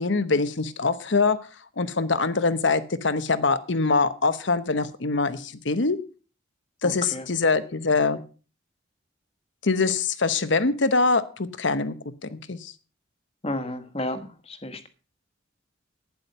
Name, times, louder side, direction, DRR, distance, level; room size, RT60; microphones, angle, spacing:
voice 1, 0.0-1.4 1.8-6.0 6.8-8.2 9.6-12.7, left 3 dB, 70° left, 13 dB, 1.0 m, -24 dB
voice 2, 6.8-7.2 13.4-14.9, left 1 dB, 30° left, 10 dB, 1.4 m, -32 dB
11.5 x 9.8 x 5.5 m, 0.37 s
head